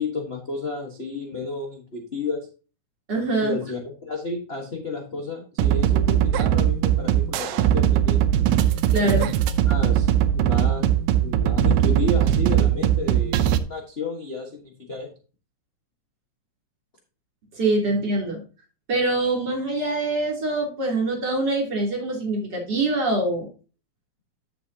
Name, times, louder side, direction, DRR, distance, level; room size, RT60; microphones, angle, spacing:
voice 1, 0.0-2.5 3.4-8.3 9.0-9.3 9.7-10.9 11.2-15.1 17.9-18.0, left 3 dB, 40° left, 1 dB, 0.8 m, -31 dB
voice 2, 3.1-3.6 8.9-9.3 17.5-18.4 18.9-23.4, right 2 dB, 35° right, -1 dB, 3.6 m, -24 dB
sound 1, 5.6-13.6, right 11 dB, 75° right, 2.0 m, -20 dB
10.5 x 7.5 x 2.8 m, 0.35 s
omnidirectional pair, 3.5 m